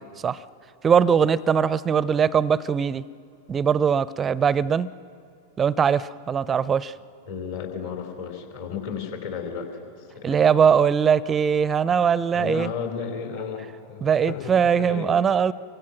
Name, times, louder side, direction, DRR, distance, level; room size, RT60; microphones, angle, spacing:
voice 1, 0.8-3.0 3.5-4.9 5.6-6.9 10.2-12.7 14.0-15.5, right 7 dB, 20° right, 20 dB, 0.5 m, -21 dB
voice 2, 7.3-9.8 10.1-10.6 12.3-15.1, left 6 dB, 60° left, 3 dB, 4.1 m, -33 dB
28.5 x 23.5 x 6.1 m, 2.5 s
figure-of-eight pair, 90°, 0 cm